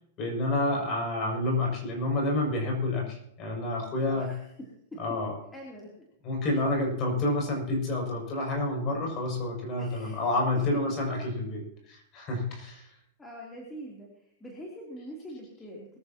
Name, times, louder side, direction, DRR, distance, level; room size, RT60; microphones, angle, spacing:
voice 1, 0.2-4.3 5.0-5.4 6.2-12.9, left 2 dB, 30° left, 0 dB, 6.9 m, -29 dB
voice 2, 4.0-4.5 4.9-5.0 5.5-5.9 6.4-6.6 9.8-10.3 12.8-16.0, equal, 10° left, -4 dB, 3.3 m, -44 dB
22.5 x 14.0 x 3.0 m, 0.77 s
supercardioid pair, 155°, 0 cm